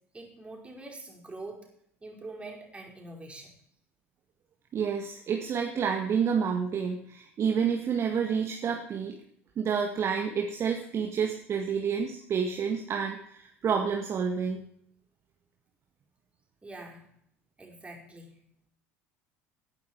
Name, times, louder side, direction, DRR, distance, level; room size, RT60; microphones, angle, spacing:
voice 1, 0.1-1.7 2.0-3.5 16.6-17.1 17.6-18.4, right 2 dB, 15° right, -1 dB, 5.2 m, -44 dB
voice 2, 4.7-9.2 9.6-14.6, right 6 dB, 40° right, 2 dB, 1.9 m, -29 dB
18.5 x 10.5 x 4.8 m, 0.69 s
figure-of-eight pair, 70°, 7 cm